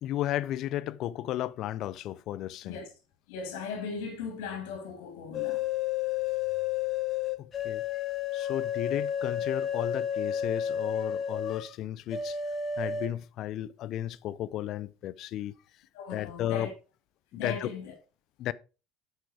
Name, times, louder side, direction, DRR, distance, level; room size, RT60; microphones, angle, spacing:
voice 1, 0.0-2.8 7.4-7.8 8.3-12.4 12.8-15.5 16.1-16.7 17.3-17.7 18.4-18.5, left 12 dB, 60° left, 0.5 m, -34 dB
voice 2, 3.3-5.7 15.9-16.7 17.4-17.9, left 5 dB, 80° left, 3.4 m, -38 dB
sound 1, 5.3-11.6 12.1-13.1, left 8 dB, 40° left, 1.9 m, -31 dB
8.1 x 6.3 x 4.9 m
hypercardioid pair, 80°, 0 cm